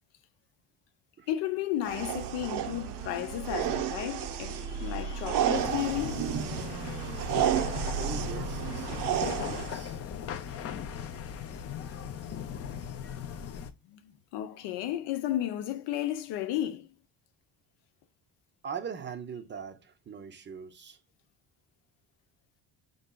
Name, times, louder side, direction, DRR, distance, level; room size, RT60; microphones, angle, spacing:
voice 1, 1.3-6.2 13.2-13.5 13.8-16.9, left 12 dB, 85° left, 0.7 m, -33 dB
sound 1, 1.8-9.8, right 9 dB, 75° right, 0.6 m, -32 dB
sound 2, 2.4-8.3, equal, 5° right, 0.8 m, -48 dB
sound 3, 5.5-13.7, left 8 dB, 35° left, 0.4 m, -38 dB
voice 2, 8.0-10.0 18.6-21.0, right 7 dB, 30° right, 0.5 m, -41 dB
5.4 x 3.8 x 2.2 m
cardioid pair, 125°, 41 cm